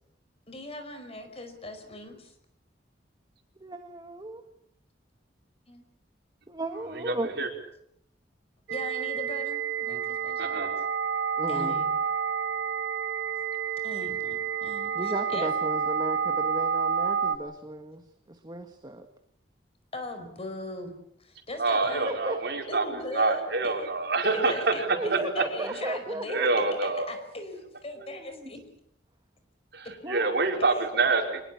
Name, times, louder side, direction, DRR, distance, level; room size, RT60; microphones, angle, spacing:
voice 1, 0.5-2.3 5.7-5.8 8.7-10.7 11.5-11.9 13.8-15.5 19.9-20.9 21.2-22.1 22.7-23.7 24.2-26.4 26.8-28.6 29.8-29.9 30.6-30.9, left 1 dB, 35° left, 7 dB, 5.0 m, -39 dB
voice 2, 3.6-4.4 6.5-7.5 11.4-11.8 14.9-19.1 22.0-22.4 24.9-26.8 28.0-28.5 30.0-30.3, right 1 dB, 25° right, 6 dB, 1.7 m, -35 dB
voice 3, 6.9-7.5 10.4-10.7 11.6-11.7 21.6-25.2 26.3-27.1 29.7-31.4, right 3 dB, 65° right, 3 dB, 5.1 m, -27 dB
sound 1, 8.7-17.4, right 7 dB, 85° right, 2.0 m, -29 dB
24.5 x 21.0 x 8.6 m, 0.74 s
head